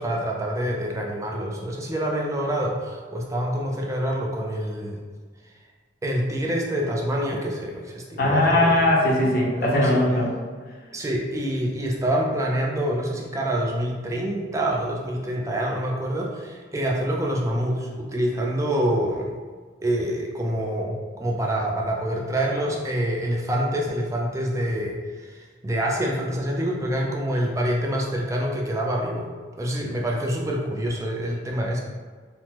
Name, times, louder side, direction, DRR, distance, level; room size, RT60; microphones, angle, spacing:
voice 1, 0.0-5.0 6.0-8.8 9.6-10.0 10.9-19.3 19.8-29.3 29.6-31.8, right 1 dB, 15° right, -1 dB, 0.4 m, -26 dB
voice 2, 8.2-10.3, left 1 dB, 55° left, -2 dB, 0.6 m, -20 dB
3.4 x 2.0 x 2.8 m, 1.5 s
head